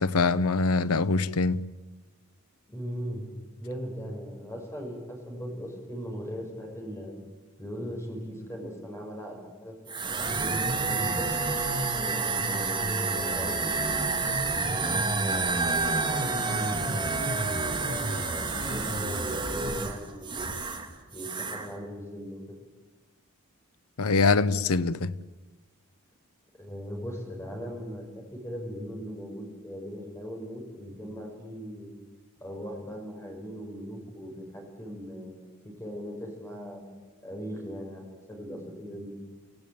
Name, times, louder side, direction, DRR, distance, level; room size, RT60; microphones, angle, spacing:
voice 1, 0.0-1.6 24.0-25.1, left 3 dB, 80° left, 0.8 m, -24 dB
voice 2, 2.7-3.3 3.6-7.1 7.6-11.3 12.0-14.1 14.7-17.2 17.8-20.6 21.1-22.4 26.6-28.0 28.3-31.9 32.4-36.8 37.2-39.1, equal, 10° left, 5.8 m, -39 dB
sound 1, 9.9-20.9 21.1-21.7, right 3 dB, 20° right, 2.3 m, -29 dB
25.0 x 16.5 x 8.9 m
head